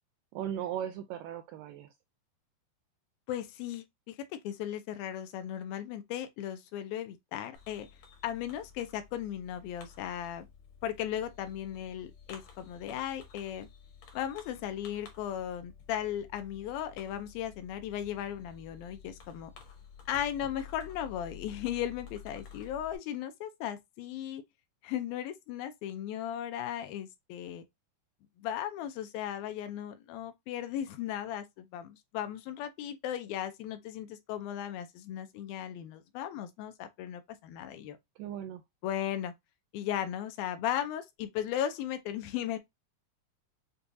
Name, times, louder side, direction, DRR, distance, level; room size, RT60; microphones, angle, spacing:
voice 1, 0.3-1.9 38.2-38.6, right 10 dB, 80° right, 1.9 m, -37 dB
voice 2, 3.3-7.9 8.2-10.5 10.8-13.7 14.1-19.5 20.1-24.4 24.8-27.7 28.4-38.0 38.8-39.3 39.7-42.6, left 10 dB, 80° left, 2.3 m, -36 dB
Fireworks, 7.5-23.0, left 7 dB, 65° left, 1.7 m, -52 dB
6.7 x 2.3 x 2.6 m
omnidirectional pair, 4.2 m